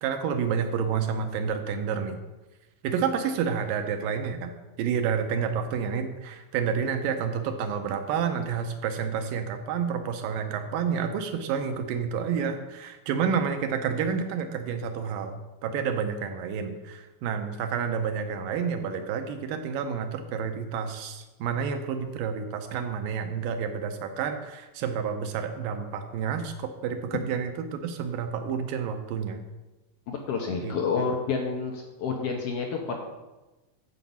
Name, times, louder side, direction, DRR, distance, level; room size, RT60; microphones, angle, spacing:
voice 1, 0.0-2.2 2.8-4.5 4.8-29.4 30.6-30.7, right 7 dB, 75° right, 7 dB, 2.5 m, -29 dB
voice 2, 30.1-33.0, left 5 dB, 80° left, 1 dB, 1.3 m, -29 dB
9.7 x 5.2 x 7.2 m, 1.1 s
omnidirectional pair, 4.1 m